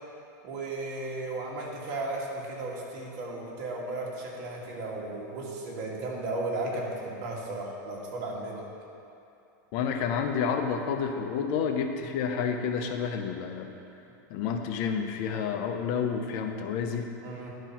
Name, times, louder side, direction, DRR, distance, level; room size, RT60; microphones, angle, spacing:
voice 1, 0.4-8.6 17.2-17.5, right 2 dB, 55° right, -3 dB, 2.0 m, -35 dB
voice 2, 9.7-13.7 14.3-17.1, left 6 dB, 45° left, 5 dB, 0.7 m, -30 dB
11.0 x 4.5 x 5.9 m, 2.8 s
supercardioid pair, 150°, 10 cm